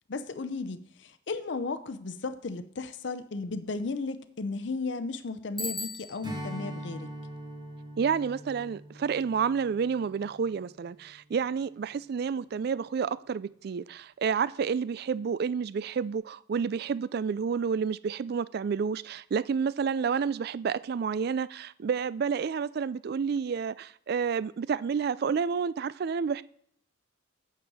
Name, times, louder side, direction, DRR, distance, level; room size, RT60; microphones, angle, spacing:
voice 1, 0.1-7.1, left 3 dB, 65° left, 0.6 m, -35 dB
Bicycle bell, 5.6-6.5, left 2 dB, ahead, 1.0 m, -37 dB
Strum, 6.2-11.0, equal, 25° right, 1.8 m, -42 dB
voice 2, 8.0-26.4, right 6 dB, 55° right, 0.3 m, -30 dB
8.9 x 6.8 x 4.8 m
head